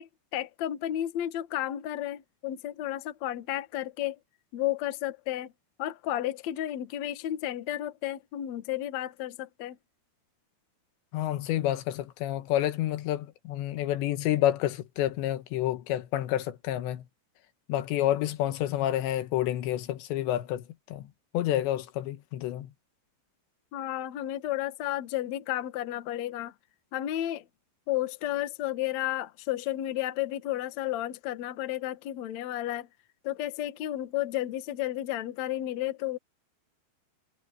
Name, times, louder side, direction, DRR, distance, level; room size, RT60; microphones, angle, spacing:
voice 1, 0.0-4.2 4.5-5.5 5.8-9.8 23.7-26.5 26.9-27.4 27.9-32.9 33.2-36.2, left 13 dB, 60° left, 1.9 m, -32 dB
voice 2, 11.1-17.1 17.7-22.7, left 13 dB, 85° left, 3.4 m, -29 dB
omnidirectional pair, 5.0 m